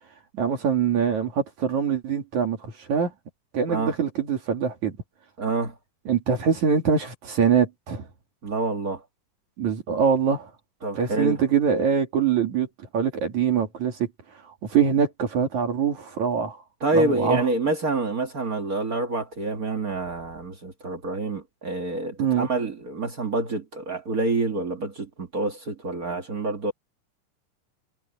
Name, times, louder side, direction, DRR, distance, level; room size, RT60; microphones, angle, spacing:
voice 1, 0.4-3.1 3.5-5.0 6.1-8.0 9.6-10.5 11.0-12.7 12.9-14.1 14.7-16.6 16.9-17.4 22.2-22.5, right 7 dB, 60° right, 3.8 m, -23 dB
voice 2, 5.4-5.7 8.4-9.0 10.8-11.4 16.8-26.7, right 2 dB, 35° right, 1.5 m, -27 dB
omnidirectional pair, 3.8 m